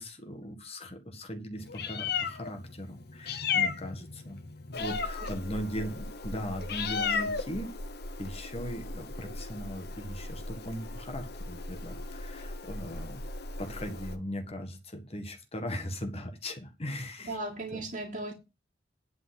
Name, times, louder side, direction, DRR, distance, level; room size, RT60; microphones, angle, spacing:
voice 1, 0.0-4.4 4.7-7.7 8.2-13.2 13.6-17.4 17.7-17.8, equal, 35° left, 4 dB, 1.7 m, -39 dB
Meow, 1.6-14.1, left 5 dB, 60° left, 1.1 m, -36 dB
voice 2, 17.2-18.3, right 2 dB, 45° right, -4 dB, 2.3 m, -37 dB
10.5 x 4.2 x 7.7 m, 0.28 s
head